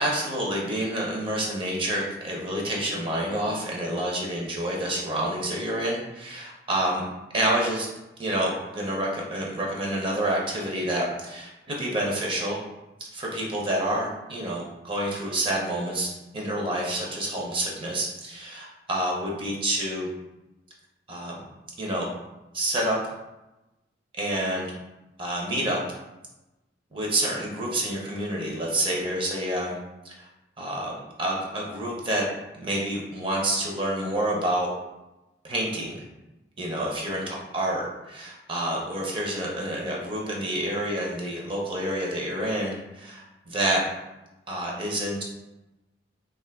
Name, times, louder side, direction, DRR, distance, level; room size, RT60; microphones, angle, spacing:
voice 1, 0.0-7.0 7.3-7.9 8.2-12.6 13.1-20.1 21.1-21.4 21.8-22.1 22.5-23.0 24.2-24.7 25.2-25.8 26.9-29.8 30.0-30.3 30.6-32.3 32.5-34.7 35.4-36.0 36.6-43.8 44.5-45.2, right 1 dB, 30° right, -2 dB, 0.6 m, -28 dB
2.4 x 2.4 x 3.4 m, 1.0 s
head